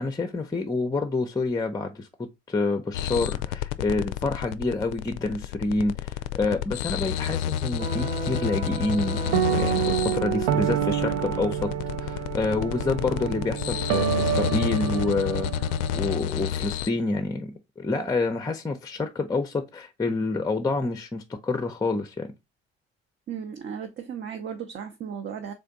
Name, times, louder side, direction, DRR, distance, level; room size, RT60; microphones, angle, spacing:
voice 1, 0.0-2.1 2.5-9.2 9.5-11.7 12.0-22.3, left 3 dB, 10° left, 0.7 m, -28 dB
sound 1, 2.9-16.9, left 10 dB, 60° left, 0.4 m, -30 dB
sound 2, 7.8-16.2, right 9 dB, 70° right, 0.7 m, -28 dB
voice 2, 23.3-25.5, right 7 dB, 35° right, 0.8 m, -35 dB
3.7 x 3.3 x 3.9 m
figure-of-eight pair, 55°, 32 cm